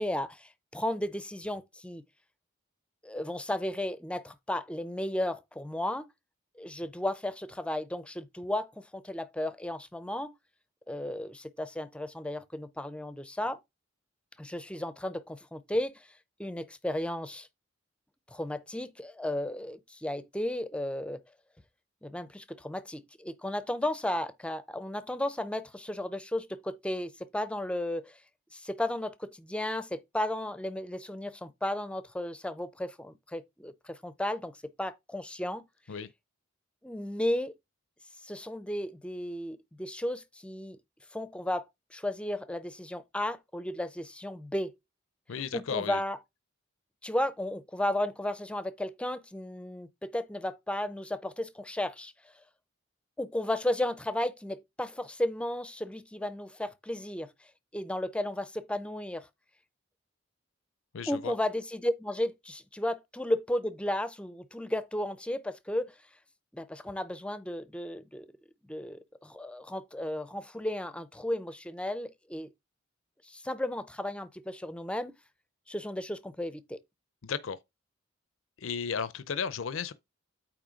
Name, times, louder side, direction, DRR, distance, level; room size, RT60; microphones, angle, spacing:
voice 1, 0.0-2.0 3.0-6.1 6.6-10.3 10.9-13.6 14.4-16.1 16.4-17.5 18.3-21.2 22.0-28.2 28.5-35.6 36.8-37.5 38.2-40.8 41.1-41.6 41.9-44.7 45.5-46.2 47.0-52.1 53.2-57.3 57.7-59.3 61.1-65.9 66.5-68.3 68.7-72.5 73.2-75.1 75.7-76.8, left 1 dB, 5° left, 0.5 m, -34 dB
voice 2, 45.3-46.0 60.9-61.3 77.2-77.6 78.6-79.9, left 6 dB, 70° left, 0.6 m, -34 dB
8.8 x 3.1 x 5.0 m
head